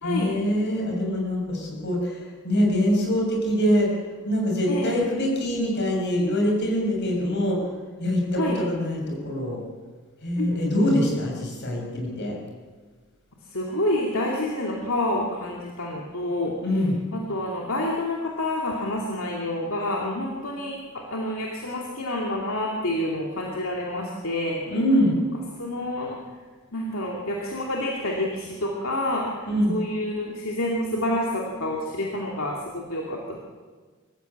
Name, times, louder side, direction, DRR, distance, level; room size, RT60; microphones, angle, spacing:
voice 1, 0.0-3.9 4.2-7.6 8.0-9.6 10.2-12.4 16.6-16.9 24.7-25.1 29.5-29.7, equal, 55° left, 0 dB, 6.5 m, -24 dB
voice 2, 4.7-5.0 8.4-8.6 10.4-11.0 13.4-16.6 17.1-24.7 25.6-26.2 26.7-33.4, left 1 dB, 70° left, -1 dB, 2.6 m, -28 dB
24.0 x 15.0 x 8.7 m, 1.4 s
head